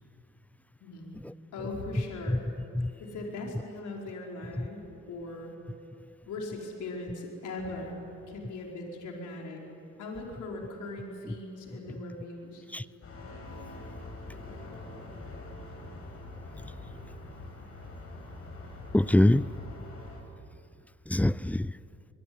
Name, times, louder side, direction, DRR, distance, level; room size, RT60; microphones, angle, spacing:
voice 1, 0.8-1.2 1.5-2.4 3.0-5.5 6.3-9.6 10.0-12.6, left 2 dB, 75° left, -1 dB, 5.3 m, -39 dB
sound 1, 13.0-20.2, left 2 dB, 50° left, 7.1 m, -44 dB
voice 2, 18.9-19.5 21.1-21.8, left 1 dB, 5° left, 18 dB, 0.5 m, -24 dB
24.5 x 22.5 x 9.8 m, 2.7 s
cardioid pair, 90°, 30 cm